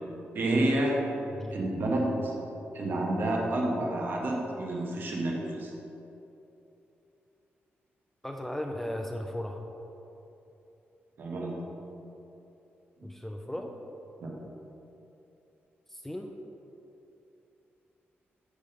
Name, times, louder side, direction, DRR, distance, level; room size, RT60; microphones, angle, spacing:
voice 1, 0.3-1.0 1.5-2.3 2.7-5.7 11.2-11.5 14.2-14.3, right 1 dB, 50° right, -1 dB, 1.3 m, -29 dB
voice 2, 8.2-9.6 13.0-13.7 15.9-16.4, left 1 dB, 5° left, 3 dB, 0.4 m, -36 dB
8.3 x 3.6 x 6.5 m, 2.9 s
wide cardioid pair, 150°, 4 cm